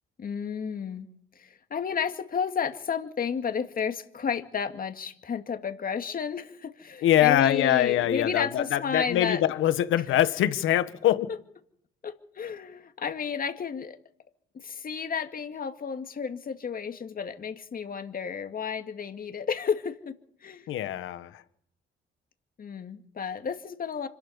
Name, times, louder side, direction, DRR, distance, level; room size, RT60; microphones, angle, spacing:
voice 1, 0.2-1.1 1.4-9.5 12.0-14.0 14.6-20.1 20.4-20.7 22.6-24.1, left 6 dB, 45° left, 2.2 m, -32 dB
voice 2, 7.0-11.3 20.7-21.4, left 12 dB, 85° left, 1.5 m, -24 dB
26.0 x 12.5 x 8.3 m
cardioid pair, 90°, 20 cm